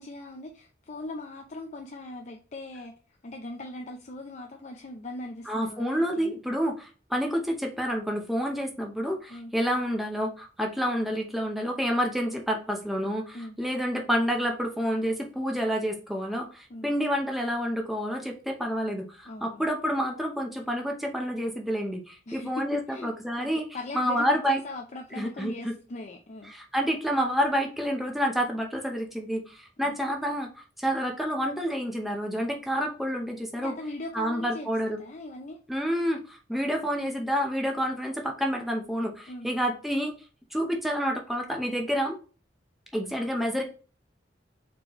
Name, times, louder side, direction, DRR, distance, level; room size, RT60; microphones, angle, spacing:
voice 1, 0.0-6.3 9.3-9.5 13.3-13.6 16.7-16.9 19.2-19.7 22.3-26.5 29.8-30.0 33.6-34.7 35.0-35.6 36.5-36.7 39.3-39.5, left 2 dB, 40° left, 2 dB, 0.5 m, -40 dB
voice 2, 5.5-23.6 23.9-24.6 25.1-25.7 26.5-33.7 34.1-35.0 35.7-40.1 40.5-42.2 42.9-43.6, equal, ahead, 1 dB, 0.7 m, -29 dB
4.3 x 3.2 x 3.0 m, 0.36 s
head